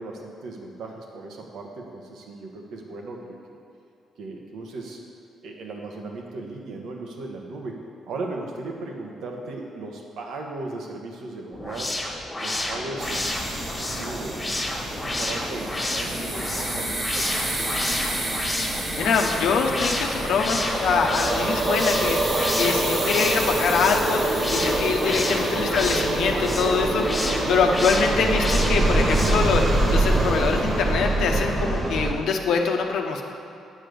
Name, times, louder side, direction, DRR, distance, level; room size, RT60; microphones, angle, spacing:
voice 1, 0.0-3.6 4.2-5.0 5.4-12.0 12.4-14.6 15.0-17.9 25.5-25.7, right 2 dB, 75° right, 1 dB, 1.3 m, -37 dB
sound 1, 11.5-29.6, left 1 dB, 15° left, 1.7 m, -31 dB
sound 2, 13.0-32.1, right 2 dB, 35° right, 1.7 m, -25 dB
voice 2, 19.0-29.6 29.9-33.2, left 5 dB, 80° left, 3 dB, 0.9 m, -24 dB
8.9 x 5.1 x 7.8 m, 2.7 s
cardioid pair, 90°, 0 cm